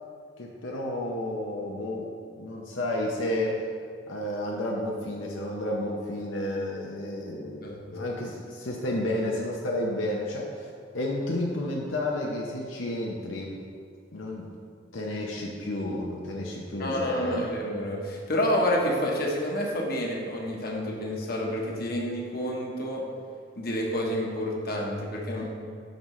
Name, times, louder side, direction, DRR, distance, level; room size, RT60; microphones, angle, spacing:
voice 1, 0.4-2.1 2.3-3.6 4.1-7.6 7.9-13.6 14.1-14.5 14.9-17.5, left 1 dB, 80° left, -2 dB, 0.8 m, -31 dB
voice 2, 16.8-23.1 23.6-25.5, equal, 50° left, -1 dB, 1.2 m, -29 dB
9.2 x 6.2 x 3.2 m, 2.2 s
head